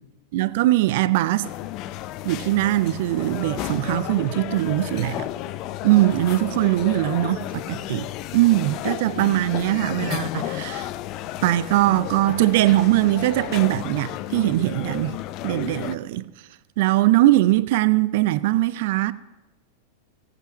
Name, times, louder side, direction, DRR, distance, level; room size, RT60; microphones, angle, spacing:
voice 1, 0.3-1.5 2.2-5.3 5.8-10.9 11.4-15.2 15.4-16.2 16.8-19.1, right 16 dB, 50° right, 0.4 m, -21 dB
sound 1, 1.4-16.0, left 14 dB, 40° left, 0.5 m, -32 dB
17.0 x 7.9 x 6.0 m
figure-of-eight pair, 90°, 0 cm